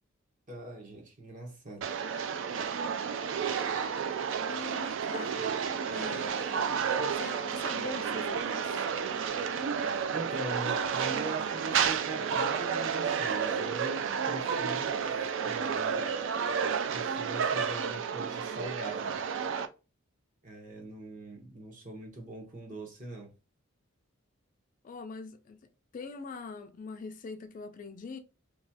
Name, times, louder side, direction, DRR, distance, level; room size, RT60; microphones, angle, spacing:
voice 1, 0.5-1.9 10.1-15.1 15.4-16.1 16.9-19.2 20.4-23.3, right 2 dB, 40° right, 1.0 m, -41 dB
sound 1, 1.8-19.7, right 7 dB, 65° right, 0.3 m, -31 dB
voice 2, 4.0-5.4 5.9-9.0 24.8-25.6 25.9-28.2, left 4 dB, 40° left, 0.3 m, -43 dB
3.0 x 2.3 x 2.7 m
head